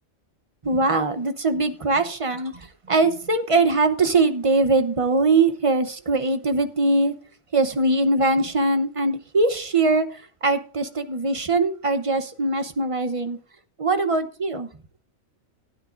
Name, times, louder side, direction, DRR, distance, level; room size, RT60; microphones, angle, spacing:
voice 1, 0.6-2.5 2.9-7.1 7.5-13.4 13.8-14.7, right 3 dB, 30° right, 0.7 m, -21 dB
16.5 x 9.5 x 2.5 m
omnidirectional pair, 1.4 m